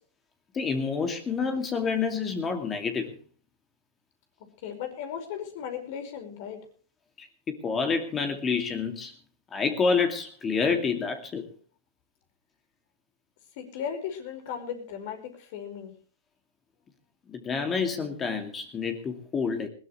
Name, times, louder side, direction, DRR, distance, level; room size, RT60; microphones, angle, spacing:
voice 1, 0.5-3.1 7.2-9.1 9.5-11.5 17.3-19.7, left 5 dB, 20° left, 6 dB, 2.4 m, -28 dB
voice 2, 4.6-6.6 13.6-15.9, left 8 dB, 55° left, 7 dB, 5.2 m, -36 dB
20.0 x 17.5 x 3.2 m, 0.41 s
hypercardioid pair, 115°, 0 cm